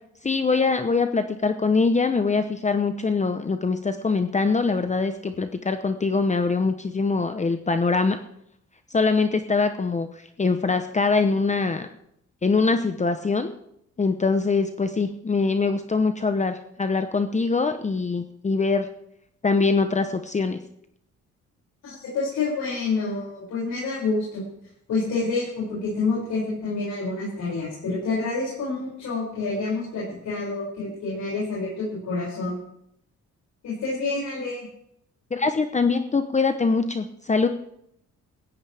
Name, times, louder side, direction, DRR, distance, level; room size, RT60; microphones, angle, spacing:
voice 1, 0.2-8.2 8.9-10.1 10.4-11.9 12.4-13.5 14.0-18.9 19.4-20.6 35.3-37.5, left 4 dB, 25° left, 8 dB, 0.9 m, -23 dB
voice 2, 21.8-24.4 24.9-32.6 33.6-34.6, left 3 dB, 70° left, -6 dB, 6.4 m, -28 dB
17.0 x 14.5 x 3.5 m, 0.75 s
cardioid pair, 90°, 30 cm